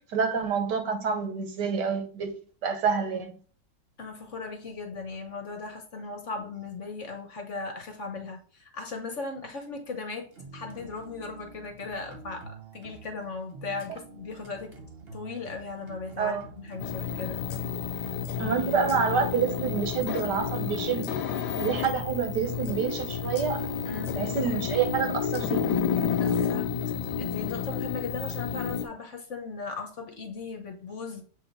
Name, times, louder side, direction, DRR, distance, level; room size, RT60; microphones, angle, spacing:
voice 1, 0.1-2.4 2.6-3.3 16.2-16.4 18.4-21.1 21.6-23.6 24.1-25.9, right 6 dB, 75° right, 1.6 m, -28 dB
voice 2, 4.0-14.8 15.1-17.4 23.8-24.4 26.1-31.2, left 4 dB, 50° left, 1.0 m, -37 dB
sound 1, 10.3-27.5, right 2 dB, 45° right, 1.0 m, -47 dB
sound 2, 16.8-28.9, left 7 dB, 75° left, 1.2 m, -30 dB
7.1 x 3.5 x 4.0 m
omnidirectional pair, 1.9 m